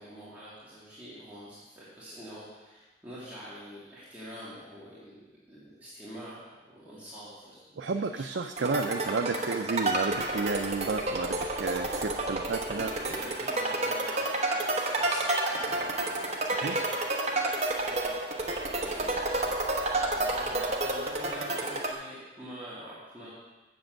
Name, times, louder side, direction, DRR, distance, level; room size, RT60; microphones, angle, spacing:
voice 1, 0.0-6.4 6.6-8.2 8.6-9.1 12.7-23.3, equal, 10° right, -11 dB, 2.5 m, -46 dB
voice 2, 7.8-12.9 16.5-16.7, right 4 dB, 70° right, 4 dB, 0.5 m, -31 dB
sound 1, 8.6-21.9, right 2 dB, 35° right, 1.0 m, -30 dB
7.5 x 6.9 x 7.7 m, 1.2 s
head